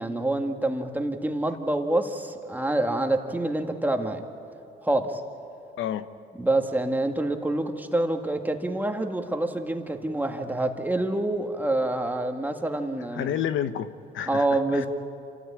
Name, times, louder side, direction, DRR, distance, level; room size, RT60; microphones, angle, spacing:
voice 1, 0.0-4.2 4.8-5.2 6.4-13.3 14.3-14.9, right 2 dB, 10° right, 1.8 m, -27 dB
voice 2, 5.8-6.1 13.1-14.9, left 10 dB, 80° left, 0.8 m, -30 dB
28.0 x 14.0 x 8.6 m
cardioid pair, 90°, 20 cm